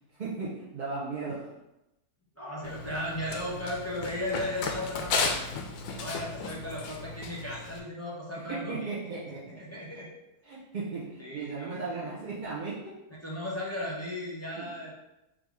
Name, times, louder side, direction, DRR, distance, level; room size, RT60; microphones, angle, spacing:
voice 1, 0.1-1.5 5.9-6.0 8.3-9.4 10.4-12.9 14.6-14.7, right 4 dB, 40° right, -7 dB, 0.7 m, -36 dB
voice 2, 2.3-5.3 6.0-9.0 9.6-10.2 11.2-11.8 12.1-12.2 13.2-14.9, left 1 dB, 15° left, -6 dB, 0.7 m, -36 dB
Run, 2.6-7.8, left 4 dB, 70° left, 0.9 m, -34 dB
3.7 x 2.8 x 4.7 m, 0.94 s
omnidirectional pair, 1.7 m